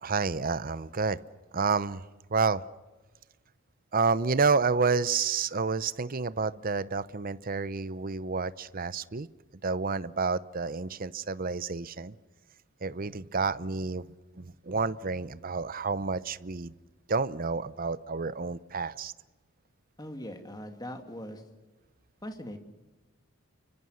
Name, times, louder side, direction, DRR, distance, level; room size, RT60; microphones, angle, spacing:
voice 1, 0.0-1.2 1.5-2.0 2.3-2.6 3.9-9.3 9.6-12.2 12.8-16.7 17.1-19.1, right 4 dB, 40° right, 16 dB, 0.7 m, -29 dB
voice 2, 20.0-21.4 22.2-22.6, equal, 20° left, 6 dB, 2.3 m, -40 dB
30.0 x 24.5 x 6.5 m, 1.2 s
head